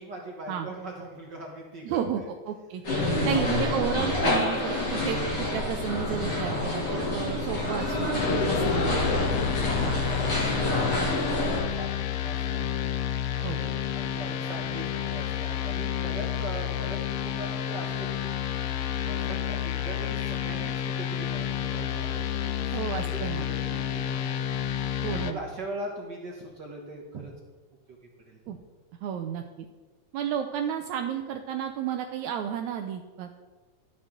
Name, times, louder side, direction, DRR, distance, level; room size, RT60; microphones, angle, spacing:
voice 1, 0.0-2.3 3.1-3.5 9.3-12.7 13.3-18.3 19.0-23.2 23.7-24.5 24.8-27.3 27.9-28.0 28.3-28.4, right 2 dB, 55° right, -1 dB, 1.3 m, -41 dB
voice 2, 1.9-2.2 2.5-9.2 9.8-10.0 13.4-13.6 22.7-23.5 25.0-25.4 28.5-28.6 29.0-29.7 30.1-33.4, right 9 dB, 80° right, 5 dB, 1.9 m, -32 dB
sound 1, 2.8-11.6, left 1 dB, 35° left, 3.2 m, -27 dB
sound 2, 8.2-25.3, left 10 dB, 85° left, 1.5 m, -30 dB
12.5 x 8.0 x 3.8 m, 1.3 s
omnidirectional pair, 3.5 m